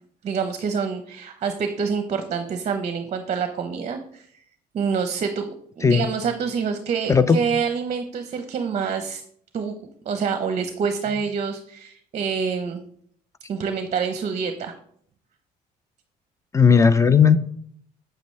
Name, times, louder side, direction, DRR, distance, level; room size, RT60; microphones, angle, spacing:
voice 1, 0.2-4.3 4.7-9.2 9.5-9.8 10.1-12.8 13.5-14.7, right 6 dB, 40° right, 8 dB, 0.7 m, -27 dB
voice 2, 16.5-17.4, left 6 dB, 15° left, 14 dB, 0.5 m, -15 dB
7.6 x 6.7 x 3.2 m, 0.64 s
cardioid pair, 110°, 17 cm